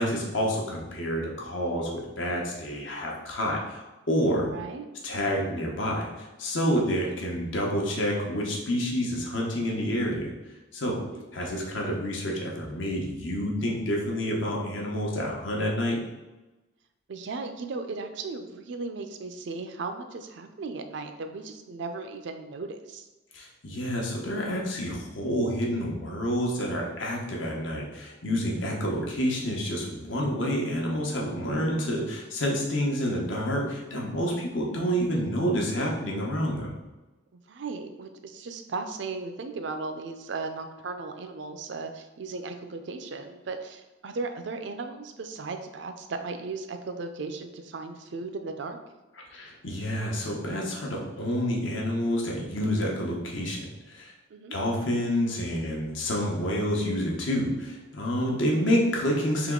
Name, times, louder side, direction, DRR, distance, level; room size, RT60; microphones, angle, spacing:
voice 1, 0.0-4.5 5.0-10.3 10.7-11.0 11.3-16.0 23.3-36.7 49.3-54.1 54.5-59.5, equal, 75° left, -1 dB, 0.9 m, -28 dB
voice 2, 4.5-4.8 7.0-7.1 11.1-11.2 17.1-23.1 28.4-28.7 37.3-48.8 54.3-54.6, right 3 dB, 65° right, 7 dB, 0.4 m, -36 dB
3.6 x 3.0 x 3.7 m, 1.1 s
head